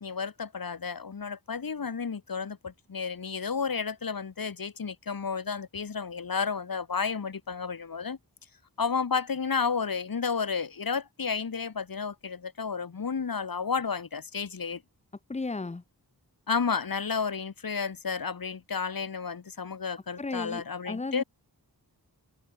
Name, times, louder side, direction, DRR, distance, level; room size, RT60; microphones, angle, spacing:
voice 1, 0.0-8.2 8.8-14.8 16.5-21.2, left 5 dB, 60° left, 1.1 m, -32 dB
voice 2, 15.3-15.8 20.2-21.2, left 3 dB, 15° left, 0.6 m, -34 dB
open air
wide cardioid pair, 45°, 40 cm